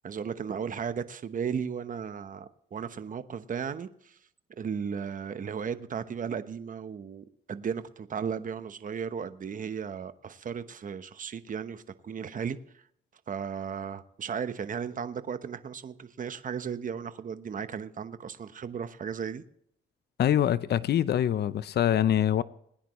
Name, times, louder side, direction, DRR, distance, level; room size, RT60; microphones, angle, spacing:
voice 1, 0.0-4.2 4.6-12.8 13.3-19.4, right 7 dB, 40° right, 1.0 m, -35 dB
voice 2, 20.2-22.4, left 10 dB, 55° left, 0.7 m, -24 dB
21.0 x 10.0 x 3.1 m
cardioid pair, 90°, 20 cm